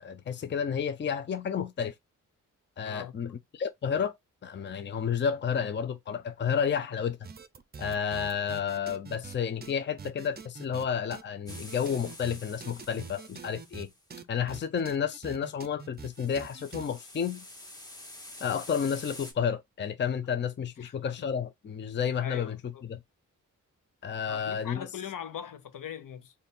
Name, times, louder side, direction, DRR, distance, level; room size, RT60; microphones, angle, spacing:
voice 1, 0.0-1.9 2.8-4.1 4.4-7.2 7.8-13.9 14.3-17.4 18.4-22.6 22.8-23.0 24.0-24.9, left 7 dB, 35° left, 0.5 m, -31 dB
sound 1, 7.2-9.4 9.6-9.7 10.0-10.9 11.1-11.2 11.5-13.8 14.1-16.9, right 5 dB, 30° right, 0.5 m, -44 dB
sound 2, 11.5-14.0 16.0-19.3, left 1 dB, 10° left, 1.0 m, -48 dB
voice 2, 22.2-22.8 24.2-26.4, left 9 dB, 80° left, 0.8 m, -41 dB
4.2 x 2.7 x 3.6 m
wide cardioid pair, 170°, 32 cm